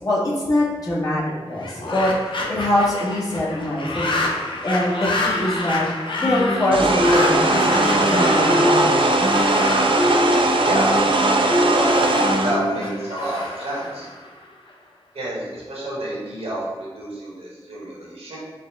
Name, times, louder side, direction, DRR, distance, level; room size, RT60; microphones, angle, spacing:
voice 1, 0.0-4.1 4.6-5.8 6.2-9.1, left 1 dB, 35° left, -8 dB, 1.4 m, -23 dB
sound 1, 1.5-14.7, left 2 dB, 55° left, 0.7 m, -29 dB
sound 2, 6.2-13.4, left 1 dB, ahead, 1.1 m, -23 dB
sound 3, 6.7-12.6, right 2 dB, 60° right, 0.4 m, -20 dB
voice 2, 10.6-11.0 11.5-11.9 12.4-14.1 15.1-18.4, right 1 dB, 85° right, -5 dB, 1.2 m, -29 dB
4.8 x 2.1 x 3.4 m, 1.3 s
wide cardioid pair, 60°, 10 cm